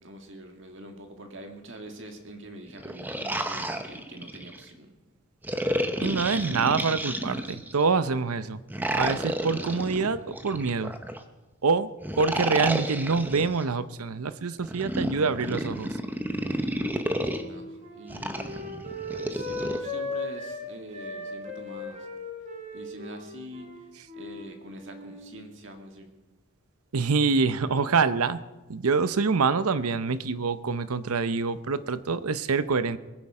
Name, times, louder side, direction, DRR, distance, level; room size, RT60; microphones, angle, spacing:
voice 1, 0.0-4.9 17.1-18.9 19.2-22.0 22.7-23.7 24.1-26.1, right 1 dB, 55° right, 4 dB, 2.0 m, -44 dB
sound 1, 2.7-4.6 5.4-7.8 8.7-11.2 12.0-13.6 14.6-17.4 18.1-19.8, right 1 dB, 10° right, 0.7 m, -31 dB
voice 2, 6.0-8.6 8.9-10.9 11.6-11.9 12.2-15.9 26.9-28.4 28.7-33.0, right 4 dB, 85° right, 14 dB, 0.7 m, -26 dB
Wind instrument woodwind instrument, 16.7-20.6 20.9-24.5 24.7-25.3, left 2 dB, 30° right, 4.1 m, -37 dB
22.0 x 9.9 x 4.9 m, 1.1 s
head